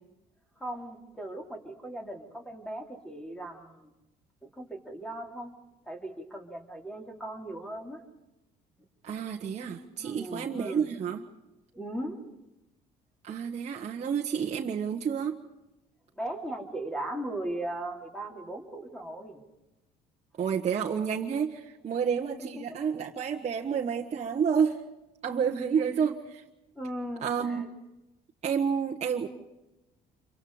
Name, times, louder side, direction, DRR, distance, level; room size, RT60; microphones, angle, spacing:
voice 1, 0.6-3.9 4.4-5.5 5.9-8.0 10.0-10.9 11.7-12.2 16.1-19.4 21.9-22.0 22.4-22.8 26.8-27.7, right 1 dB, 5° left, 2 dB, 3.7 m, -38 dB
voice 2, 9.0-11.2 13.2-15.4 20.4-24.8 25.2-26.4 27.2-27.6 28.4-29.3, right 7 dB, 40° right, 0 dB, 1.4 m, -29 dB
27.5 x 24.0 x 5.0 m, 0.99 s
cardioid pair, 110°, 17 cm